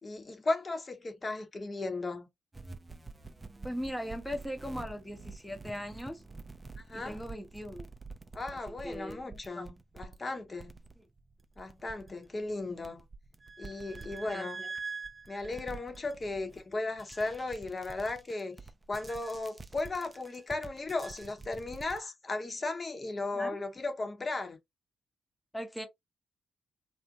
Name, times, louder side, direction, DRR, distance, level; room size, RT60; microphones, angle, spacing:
voice 1, 0.0-2.3 6.8-7.2 8.3-10.8 11.6-13.0 13.6-14.6 15.3-18.6 18.9-24.6, left 2 dB, 35° left, 0.9 m, -36 dB
sound 1, 2.5-22.0, right 4 dB, 25° right, 0.5 m, -46 dB
voice 2, 3.6-6.2 6.9-7.9 8.7-9.7 14.3-14.7 23.3-23.6 25.5-25.9, equal, 5° left, 0.9 m, -39 dB
2.6 x 2.1 x 2.7 m
hypercardioid pair, 40°, 0 cm